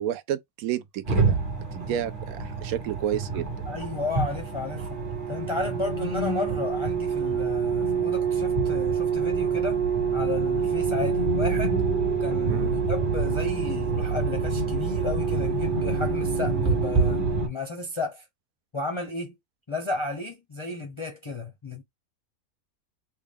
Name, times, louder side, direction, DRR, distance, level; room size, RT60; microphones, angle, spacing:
voice 1, 0.0-1.4 1.7-3.5 12.5-12.7, right 11 dB, 85° right, 1.1 m, -30 dB
sound 1, 1.0-17.5, right 5 dB, 40° right, 1.3 m, -26 dB
voice 2, 3.7-5.0 5.3-9.8 10.1-11.8 12.2-18.2 18.7-19.4 19.7-21.8, left 3 dB, 35° left, 0.5 m, -33 dB
3.7 x 2.3 x 3.5 m
omnidirectional pair, 1.5 m